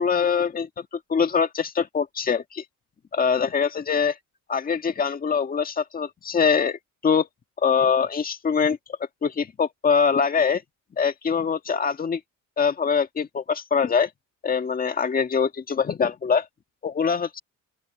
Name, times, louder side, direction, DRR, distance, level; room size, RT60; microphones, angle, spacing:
voice 1, 0.0-2.6 3.1-4.2 4.5-7.3 7.6-8.8 9.2-10.6 11.0-12.2 12.6-14.1 14.4-16.5 16.8-17.4, left 6 dB, 30° left, 1.7 m, -23 dB
open air
cardioid pair, 145°, 31 cm